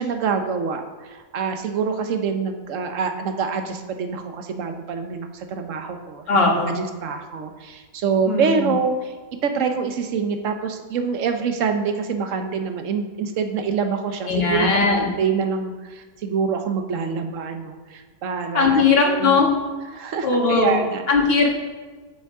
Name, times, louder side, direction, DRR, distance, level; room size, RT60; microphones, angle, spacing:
voice 1, 0.0-9.1 9.4-19.4 19.9-21.0, right 5 dB, 60° right, 6 dB, 1.2 m, -26 dB
voice 2, 6.3-6.7 8.3-8.7 14.3-15.1 18.5-19.5 20.2-20.8 21.1-21.5, left 4 dB, 40° left, 0 dB, 1.6 m, -18 dB
8.2 x 6.9 x 4.9 m, 1.4 s
omnidirectional pair, 1.6 m